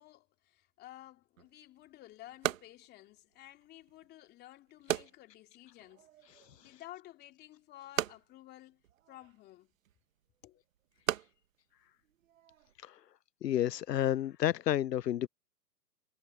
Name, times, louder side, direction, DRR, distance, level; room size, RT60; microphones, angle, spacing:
voice 1, 0.0-8.8 9.1-9.7 10.4-10.6, left 15 dB, 20° left, 2.6 m, -54 dB
sound 1, 1.4-12.8, right 11 dB, 55° right, 1.4 m, -41 dB
voice 2, 13.4-15.3, left 11 dB, 80° left, 0.6 m, -30 dB
hypercardioid pair, 140°, 48 cm